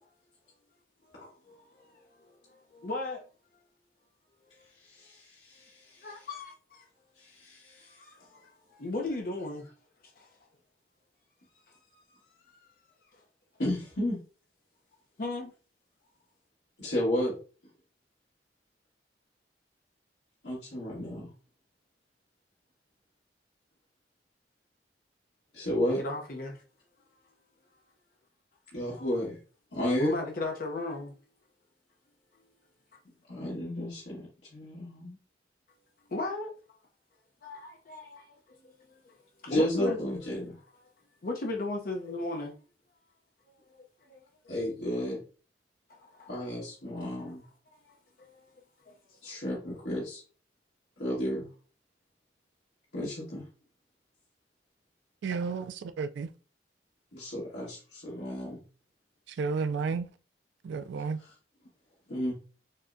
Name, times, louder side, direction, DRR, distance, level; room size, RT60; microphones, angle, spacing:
voice 1, 1.5-3.2 6.0-6.9 8.0-9.6 10.2-10.3 11.7-11.8 15.2-15.5 25.9-26.6 28.9-29.1 30.0-31.1 36.1-36.5 37.4-38.4 38.6-39.0 39.5-40.0 41.2-42.5 44.1-44.2 45.9-46.3 47.9-48.5 48.9-49.0, left 2 dB, 50° left, 0.6 m, -36 dB
voice 2, 4.8-6.3 7.2-8.0 13.6-14.2 16.8-17.3 20.4-21.3 25.5-26.0 28.7-29.4 29.7-30.1 33.3-35.2 39.5-40.5 44.5-45.2 46.3-47.4 49.2-50.2 51.0-51.5 52.9-53.5 57.1-58.6 61.0-61.1 62.1-62.3, equal, 80° left, 1.6 m, -32 dB
voice 3, 55.2-56.3 59.3-60.1 60.6-61.2, right 5 dB, 80° right, 0.3 m, -32 dB
6.4 x 2.2 x 2.5 m
head